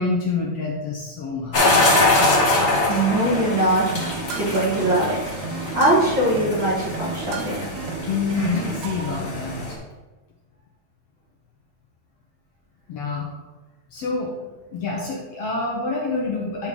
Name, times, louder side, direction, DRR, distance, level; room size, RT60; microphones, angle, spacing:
voice 1, 0.0-1.9 8.1-9.8 12.9-13.3 13.9-14.3 14.7-16.7, left 3 dB, 65° left, -2 dB, 1.8 m, -27 dB
sound 1, 1.5-9.7, left 2 dB, 30° left, 1.3 m, -23 dB
voice 2, 2.9-4.0 4.4-5.2 5.7-7.6, right 1 dB, 40° right, -6 dB, 2.2 m, -21 dB
sound 2, 3.2-9.2, right 5 dB, 75° right, 1.8 m, -34 dB
10.5 x 4.5 x 3.7 m, 1.1 s
omnidirectional pair, 3.6 m